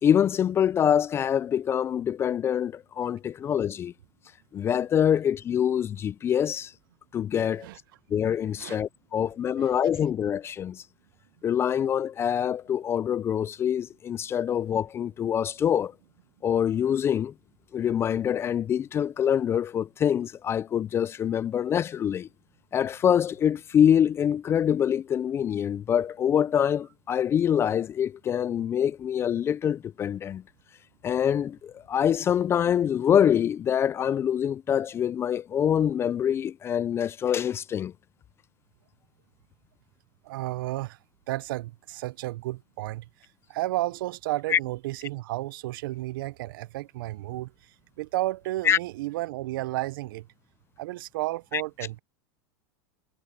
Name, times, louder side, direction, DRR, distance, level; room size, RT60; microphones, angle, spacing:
voice 1, 0.0-3.9 4.5-6.7 7.1-7.7 8.1-10.8 11.4-15.9 16.4-17.3 17.7-22.3 22.7-30.4 31.0-37.9 44.5-44.6 48.6-48.8 51.5-51.6, left 9 dB, 20° left, 0.4 m, -25 dB
voice 2, 40.2-41.0 41.3-43.0 43.5-47.5 48.0-50.3 50.8-52.0, right 17 dB, 65° right, 0.7 m, -32 dB
supercardioid pair, 130°, 12 cm